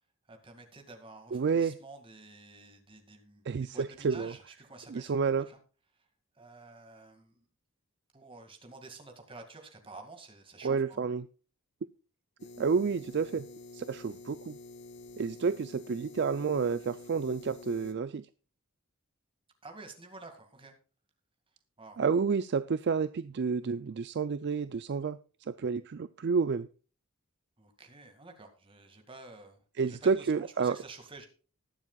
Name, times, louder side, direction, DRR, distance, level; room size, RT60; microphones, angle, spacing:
voice 1, 0.3-5.1 5.5-5.6 5.9-6.1 6.3-7.5 8.1-11.1 19.6-20.7 21.8-22.0 27.6-31.3, right 3 dB, 25° right, 5 dB, 2.1 m, -50 dB
voice 2, 1.3-1.8 3.5-4.3 4.9-5.5 10.6-11.3 12.6-13.5 13.7-14.6 15.2-18.3 22.0-25.2 25.6-26.7 29.8-30.8, right 5 dB, 50° right, 14 dB, 0.4 m, -30 dB
sound 1, 12.4-17.9, left 2 dB, 55° left, 1.2 m, -49 dB
20.0 x 7.3 x 2.3 m, 0.37 s
head